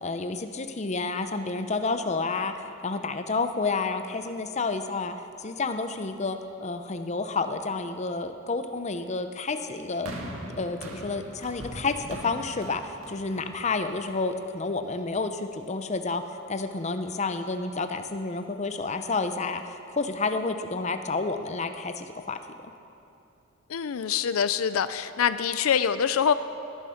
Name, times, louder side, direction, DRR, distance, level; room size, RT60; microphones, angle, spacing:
voice 1, 0.0-2.5 2.8-5.1 5.4-10.1 10.6-16.2 16.5-22.4, left 3 dB, 35° left, 8 dB, 0.6 m, -30 dB
sound 1, 10.1-14.4 15.2-15.3, right 1 dB, 90° right, 1.7 m, -41 dB
voice 2, 23.7-26.3, left 7 dB, 80° left, 13 dB, 0.4 m, -25 dB
18.0 x 10.0 x 5.8 m, 2.8 s
head